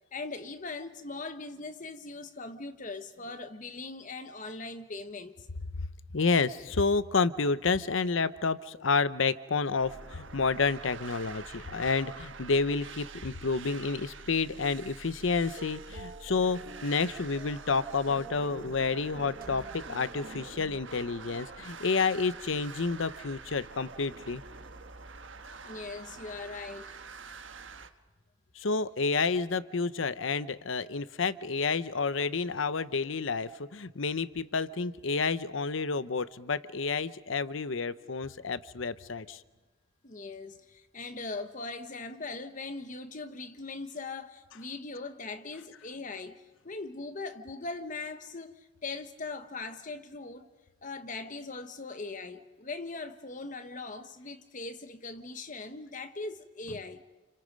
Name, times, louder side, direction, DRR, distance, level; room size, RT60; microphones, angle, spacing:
voice 1, 0.1-5.5 18.5-18.7 19.1-19.3 25.6-27.0 40.0-50.5 50.8-57.0, left 3 dB, 40° left, 1.0 m, -40 dB
voice 2, 6.1-24.4 28.6-39.4, left 4 dB, 75° left, 0.8 m, -30 dB
sound 1, 9.8-27.9, right 4 dB, 70° right, 1.4 m, -46 dB
sound 2, 15.2-20.8, right 2 dB, 45° right, 1.2 m, -48 dB
30.0 x 30.0 x 5.3 m
head